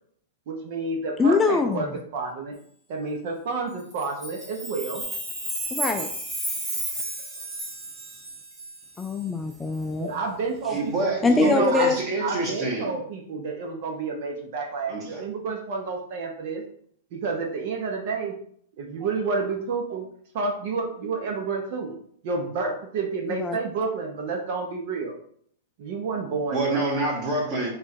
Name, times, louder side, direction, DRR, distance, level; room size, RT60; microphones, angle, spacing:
voice 1, 0.5-1.9 2.1-2.5 2.9-5.0 9.9-11.1 11.4-11.9 12.2-16.6 17.1-18.3 18.8-20.1 20.3-21.9 22.2-25.1 25.8-26.8, right 4 dB, 55° right, 2 dB, 0.9 m, -30 dB
voice 2, 1.2-1.9 5.7-6.1 9.0-10.1 11.2-12.0 23.3-23.6, left 4 dB, 10° left, 4 dB, 0.3 m, -23 dB
Chime, 3.9-9.0, right 1 dB, 15° right, 1.6 m, -33 dB
voice 3, 10.7-12.9 14.9-15.2 26.5-27.7, right 2 dB, 35° right, -1 dB, 1.4 m, -27 dB
3.5 x 2.5 x 4.4 m, 0.63 s
hypercardioid pair, 140°, 0 cm